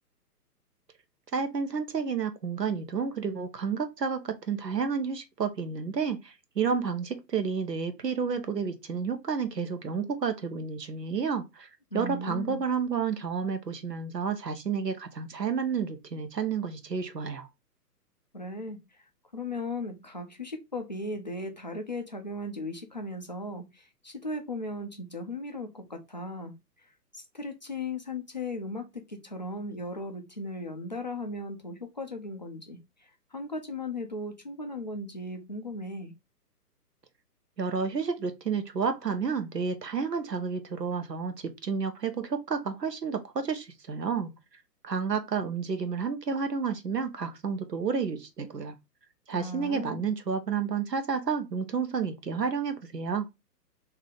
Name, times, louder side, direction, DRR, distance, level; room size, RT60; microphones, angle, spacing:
voice 1, 1.3-11.7 11.9-17.5 37.6-44.3 44.8-48.7 49.3-53.3, right 6 dB, 85° right, 0.9 m, -30 dB
voice 2, 11.9-12.6 18.3-18.8 19.3-26.9 27.1-36.1 49.3-50.0, left 2 dB, 30° left, 0.4 m, -37 dB
3.4 x 2.8 x 3.7 m
figure-of-eight pair, 130°, 48 cm